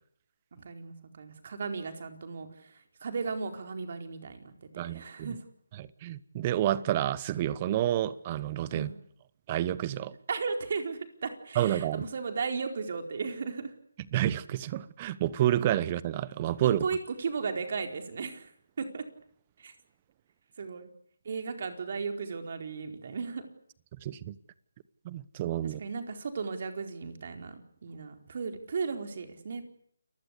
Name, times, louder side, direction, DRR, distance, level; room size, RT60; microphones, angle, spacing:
voice 1, 0.5-5.4 8.7-9.0 10.3-13.7 16.6-18.5 18.8-19.0 19.6-19.7 20.6-20.9 21.2-23.5 25.6-29.6, right 5 dB, 50° right, 4.4 m, -36 dB
voice 2, 4.8-5.3 5.8-8.9 9.5-10.1 11.6-12.0 14.1-16.8 24.0-24.3 25.0-25.8, right 12 dB, 25° right, 1.0 m, -29 dB
29.0 x 20.5 x 8.4 m
figure-of-eight pair, 160°, 0 cm